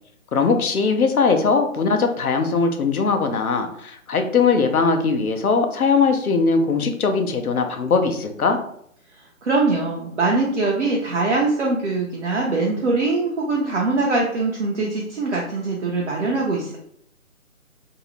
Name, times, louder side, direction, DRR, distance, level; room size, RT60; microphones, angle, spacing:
voice 1, 0.3-8.6, left 4 dB, 80° left, 5 dB, 0.6 m, -20 dB
voice 2, 9.1-16.8, right 3 dB, 55° right, -3 dB, 0.6 m, -22 dB
2.6 x 2.0 x 2.9 m, 0.68 s
figure-of-eight pair, 150°, 43 cm